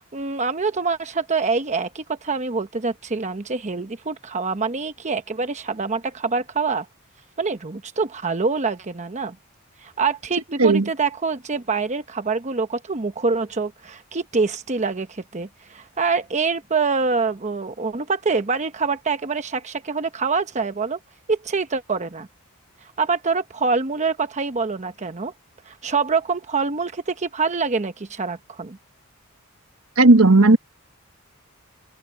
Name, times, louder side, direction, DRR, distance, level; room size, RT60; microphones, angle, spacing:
voice 1, 0.0-6.9 7.4-9.4 9.8-21.0 21.3-22.3 23.0-25.3 25.7-28.8, right 4 dB, 35° right, 0.9 m, -25 dB
voice 2, 30.0-30.6, right 2 dB, 75° right, 1.5 m, -13 dB
open air
head